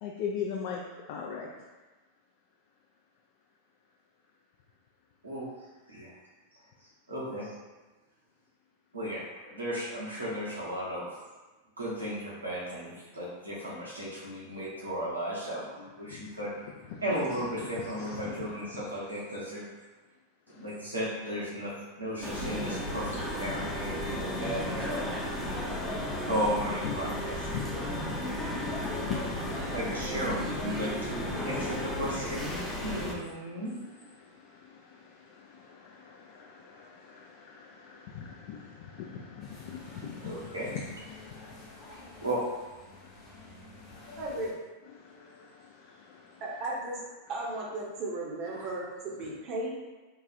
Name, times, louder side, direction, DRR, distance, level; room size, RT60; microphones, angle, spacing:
voice 1, 0.0-0.8 1.1-1.5 16.1-16.3 16.9-17.0 17.3-17.5 17.8-18.5 20.5-20.7 25.5-26.3 26.8-29.8 33.5-33.6 34.1-42.2 42.8-44.2 44.9-46.4 48.5-48.7, left 7 dB, 45° left, -1 dB, 0.3 m, -42 dB
voice 2, 7.1-7.5 8.9-9.2 9.5-11.1 11.8-16.5 17.0-19.7 20.5-25.1 26.3-27.4 29.6-33.8 40.2-40.7 42.2-42.4 48.5-48.6, equal, 80° right, -7 dB, 1.0 m, -35 dB
sound 1, 22.2-33.1, left 1 dB, 5° left, 0.6 m, -34 dB
sound 2, 39.4-44.5, left 2 dB, 30° left, 1.0 m, -51 dB
voice 3, 44.2-44.5 46.4-47.0 47.3-49.7, right 2 dB, 35° right, -3 dB, 0.7 m, -35 dB
3.8 x 2.3 x 2.6 m, 1.2 s
figure-of-eight pair, 90°, 0 cm